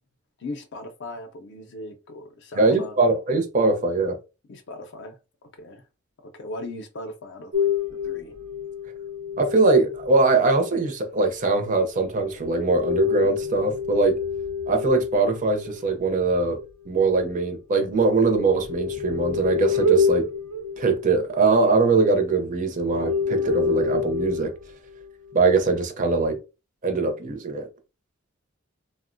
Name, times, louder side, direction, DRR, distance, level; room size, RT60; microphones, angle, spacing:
voice 1, 0.4-3.0 4.5-5.9 6.2-8.4, left 2 dB, 55° left, 0.5 m, -38 dB
voice 2, 2.6-4.2 9.4-14.2 14.7-16.6 16.9-20.3 20.8-24.5 25.3-26.4 26.8-27.7, right 3 dB, 35° right, 0.5 m, -22 dB
sound 1, 7.5-10.7 12.4-17.5 17.9-22.4 22.8-24.6 25.3-25.8, left 5 dB, 80° right, 0.7 m, -28 dB
3.5 x 2.0 x 2.5 m
head